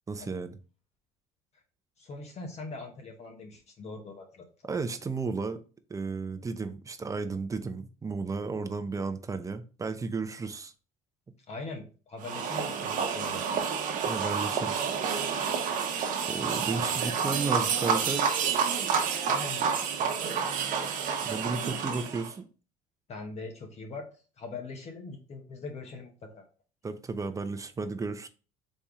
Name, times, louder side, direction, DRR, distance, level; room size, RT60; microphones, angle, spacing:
voice 1, 0.1-0.6 4.7-5.6 5.9-10.7 14.0-14.8 15.1-15.4 16.3-18.3 21.2-22.5 26.8-28.3, right 4 dB, 20° right, 0.6 m, -33 dB
voice 2, 2.0-4.5 11.5-13.7 16.9-17.0 19.3-19.7 20.0-20.1 23.1-24.1 24.4-26.4, left 3 dB, 45° left, 1.0 m, -42 dB
sound 1, 12.2-22.3, right 6 dB, 55° right, 1.0 m, -29 dB
4.2 x 3.4 x 3.7 m
supercardioid pair, 100°, 16 cm